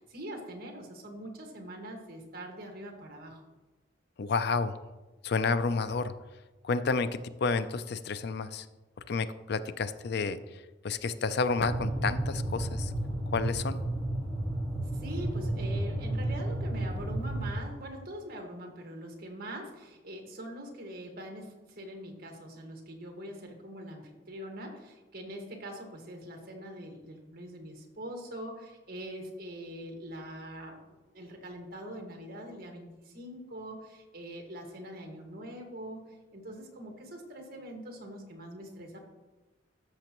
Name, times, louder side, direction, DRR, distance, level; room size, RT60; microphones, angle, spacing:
voice 1, 0.0-3.4 14.8-39.0, right 1 dB, 50° right, 2 dB, 1.8 m, -43 dB
voice 2, 4.2-4.8 5.2-6.1 6.6-8.7 9.1-10.4 10.8-12.9 13.3-13.8, left 4 dB, 60° left, 12 dB, 0.4 m, -30 dB
sound 1, 11.6-17.5, right 1 dB, 10° left, 3.0 m, -32 dB
13.5 x 6.7 x 3.0 m, 1.1 s
head